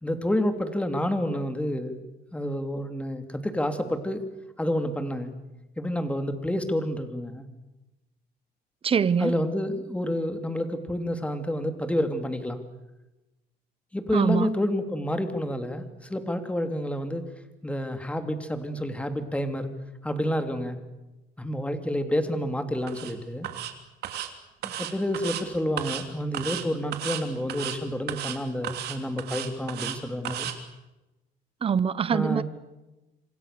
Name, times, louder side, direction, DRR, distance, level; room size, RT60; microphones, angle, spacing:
voice 1, 0.0-2.0 2.3-4.2 4.6-5.3 5.8-7.5 9.2-12.6 13.9-17.3 17.6-19.7 20.0-20.8 21.4-23.5 24.1-24.2 24.6-30.5 32.1-32.4, left 1 dB, 5° left, 3.1 m, -29 dB
voice 2, 8.8-9.4 14.1-14.5 31.6-32.4, right 7 dB, 35° right, 1.0 m, -24 dB
sound 1, 22.9-23.1 23.4-23.7 24.0-24.3 24.6-25.4 25.8-26.0 26.3-26.6 26.9-27.2 27.5-27.8 28.1-28.4 28.6-30.0 30.2-30.5, right 12 dB, 75° right, 3.0 m, -33 dB
27.0 x 26.5 x 6.9 m
cardioid pair, 110°, 17 cm